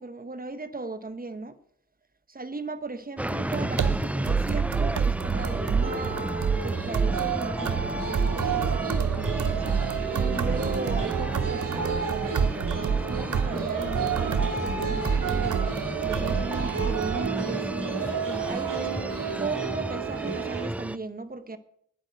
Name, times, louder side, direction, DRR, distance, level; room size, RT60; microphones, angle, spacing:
voice 1, 0.0-1.6 2.3-6.2 6.5-9.6 10.3-15.6 16.0-19.0 19.4-21.6, right 3 dB, 25° right, 1.3 m, -37 dB
sound 1, 3.2-21.0, right 1 dB, 5° right, 0.4 m, -33 dB
sound 2, 3.3-17.3, right 6 dB, 65° right, 0.9 m, -29 dB
sound 3, 5.3-20.7, right 6 dB, 80° right, 2.2 m, -32 dB
10.5 x 8.4 x 9.2 m
cardioid pair, 70°, 32 cm